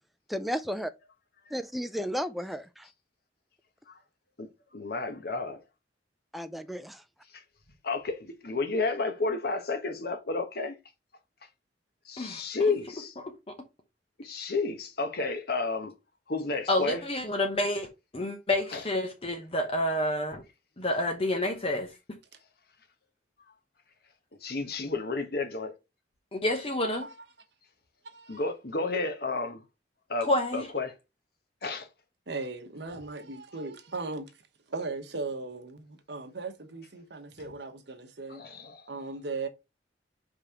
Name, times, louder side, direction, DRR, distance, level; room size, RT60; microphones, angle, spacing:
voice 1, 0.3-0.9 1.5-2.9 6.3-7.0, equal, ahead, 0.4 m, -33 dB
voice 2, 4.7-5.6 7.3-7.4 7.8-10.7 12.0-13.1 14.2-15.9 16.3-17.0 18.7-18.8 24.4-25.7 28.3-29.6 30.1-31.0 31.6-31.9 38.3-38.8, left 3 dB, 55° left, 1.2 m, -31 dB
voice 3, 16.7-17.9 18.1-20.4 20.8-21.9 26.3-27.1 30.2-30.7, left 1 dB, 30° left, 0.9 m, -28 dB
voice 4, 26.8-27.3 28.0-28.4 32.3-34.3 34.7-38.4 38.9-39.5, right 3 dB, 65° right, 1.1 m, -38 dB
5.0 x 3.6 x 5.6 m
head